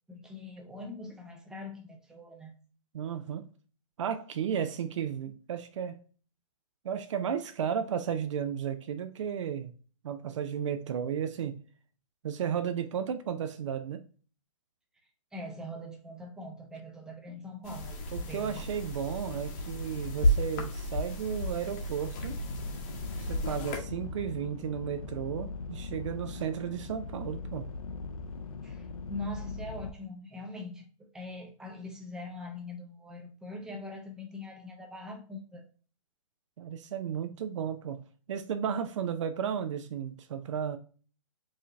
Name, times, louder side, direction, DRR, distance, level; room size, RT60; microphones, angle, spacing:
voice 1, 0.1-2.6 15.3-18.0 18.3-18.7 28.6-35.6, left 2 dB, 5° right, 0.5 m, -42 dB
voice 2, 2.9-3.5 4.0-6.0 6.8-9.7 10.0-11.6 12.2-14.0 18.1-22.4 23.2-27.7 36.6-38.0 38.3-40.8, right 8 dB, 60° right, 0.5 m, -34 dB
sound 1, 17.6-23.8, equal, 30° left, 0.8 m, -33 dB
sound 2, 22.2-29.9, left 4 dB, 85° left, 0.5 m, -40 dB
4.8 x 2.8 x 2.4 m
hypercardioid pair, 145°, 17 cm